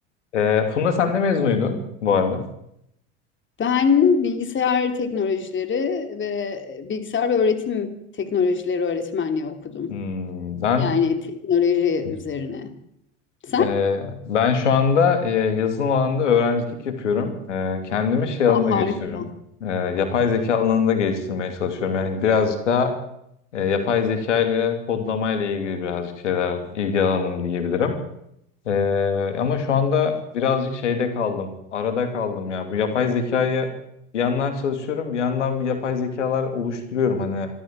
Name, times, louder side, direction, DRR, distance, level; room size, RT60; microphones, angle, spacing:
voice 1, 0.3-2.4 9.9-10.9 13.6-19.2 19.6-22.9 23.5-27.9 28.6-33.7 34.1-37.5, left 6 dB, 90° left, 7 dB, 2.9 m, -23 dB
voice 2, 3.6-7.9 8.2-10.0 10.8-12.7 13.4-13.8 18.5-19.3, left 6 dB, 35° left, 8 dB, 2.9 m, -23 dB
25.5 x 13.5 x 7.6 m, 0.76 s
hypercardioid pair, 80°, 35 cm